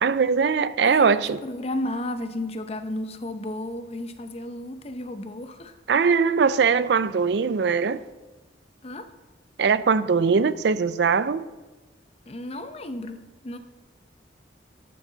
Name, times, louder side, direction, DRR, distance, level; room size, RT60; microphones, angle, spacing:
voice 1, 0.0-1.4 5.9-8.0 9.6-11.4, right 5 dB, 60° right, 16 dB, 0.4 m, -21 dB
voice 2, 0.8-5.7 8.8-9.1 12.3-13.6, left 1 dB, 35° left, 9 dB, 0.7 m, -33 dB
13.0 x 8.3 x 3.9 m, 1.2 s
head